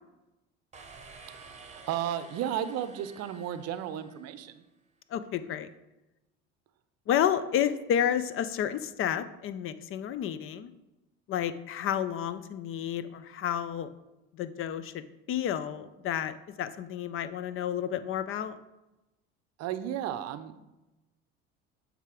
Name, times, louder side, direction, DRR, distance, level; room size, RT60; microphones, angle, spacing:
sound 1, 0.7-4.5, right 4 dB, 20° right, 0.9 m, -51 dB
voice 1, 1.6-4.6 19.6-20.6, right 10 dB, 55° right, 12 dB, 0.6 m, -34 dB
voice 2, 5.1-5.7 7.1-10.7 11.3-13.9 14.3-18.5, left 9 dB, 45° left, 13 dB, 0.5 m, -31 dB
7.4 x 3.4 x 4.8 m, 1.0 s
supercardioid pair, 90°, 31 cm